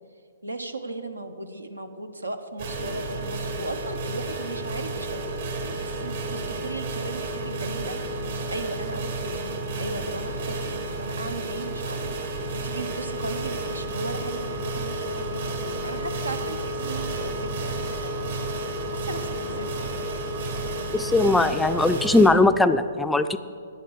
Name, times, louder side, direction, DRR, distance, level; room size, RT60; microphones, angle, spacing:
voice 1, 0.4-8.0 8.5-9.4 9.8-12.1 12.6-18.4 18.9-19.7, right 2 dB, 85° right, 8 dB, 1.0 m, -36 dB
sound 1, 2.6-22.3, right 2 dB, 60° right, 2.2 m, -31 dB
voice 2, 20.9-23.4, left 2 dB, 5° left, 10 dB, 0.4 m, -19 dB
9.9 x 8.9 x 6.4 m, 2.5 s
figure-of-eight pair, 125°, 0 cm